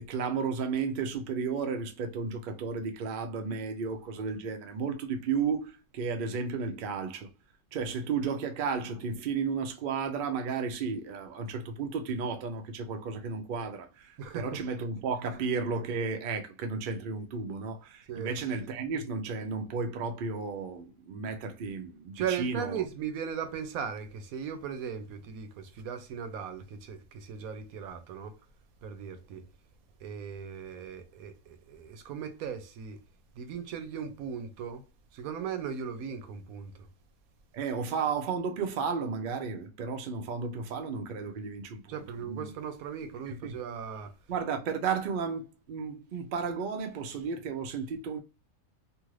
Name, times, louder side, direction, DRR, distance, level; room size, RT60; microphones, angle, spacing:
voice 1, 0.0-7.3 7.7-22.8 37.5-42.0 42.2-42.5 43.3-43.5 44.3-48.2, right 5 dB, 65° right, 0.5 m, -33 dB
voice 2, 14.2-14.6 18.1-18.3 22.1-28.3 28.8-29.4 30.0-33.0 33.4-34.8 35.1-36.9 41.9-44.1, right 7 dB, 90° right, 1.1 m, -38 dB
2.6 x 2.5 x 3.0 m
omnidirectional pair, 1.5 m